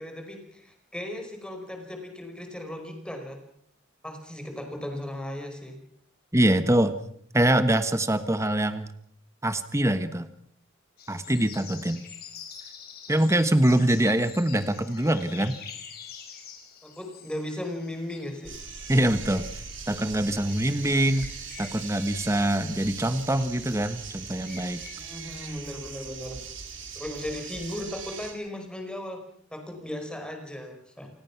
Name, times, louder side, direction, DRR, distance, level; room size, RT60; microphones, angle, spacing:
voice 1, 0.0-3.4 4.0-5.8 16.8-18.6 24.9-26.4 26.9-31.1, left 1 dB, 5° left, 4 dB, 4.8 m, -37 dB
voice 2, 6.3-6.9 7.3-8.9 9.4-10.3 11.1-12.0 13.1-15.5 18.9-19.5 19.9-21.3 21.6-24.8, right 1 dB, 15° right, 11 dB, 1.3 m, -24 dB
sound 1, 11.0-24.9, left 7 dB, 50° left, 5.2 m, -47 dB
sound 2, 18.4-28.3, right 6 dB, 65° right, 4.3 m, -40 dB
29.0 x 18.0 x 6.0 m, 0.64 s
head